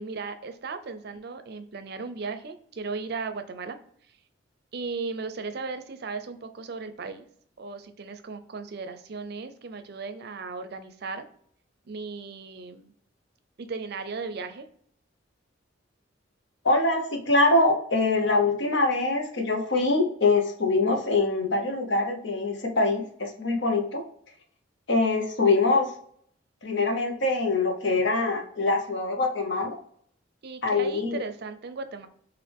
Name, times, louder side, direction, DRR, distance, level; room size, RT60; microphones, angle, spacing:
voice 1, 0.0-3.8 4.7-7.3 7.6-11.2 11.8-12.9 13.6-14.7 30.4-32.1, right 4 dB, 55° right, 9 dB, 0.5 m, -36 dB
voice 2, 16.6-24.0 24.9-25.9 26.6-29.8 30.6-31.2, left 3 dB, 70° left, 3 dB, 0.9 m, -24 dB
6.1 x 2.5 x 3.4 m, 0.63 s
head